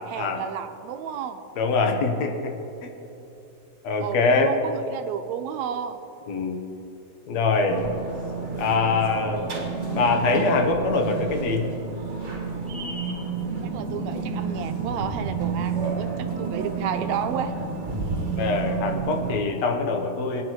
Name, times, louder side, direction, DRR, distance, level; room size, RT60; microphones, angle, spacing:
voice 1, 0.1-1.4 4.0-6.0 13.6-17.5, right 8 dB, 80° right, 7 dB, 1.7 m, -32 dB
voice 2, 1.6-2.5 3.8-4.5 6.3-6.6 7.3-7.9 8.6-9.5 9.9-11.6 18.4-20.4, left 4 dB, 70° left, 3 dB, 2.1 m, -23 dB
sound 1, 7.7-19.4, right 4 dB, 30° right, 1.5 m, -30 dB
23.5 x 9.6 x 3.1 m, 3.0 s
omnidirectional pair, 3.4 m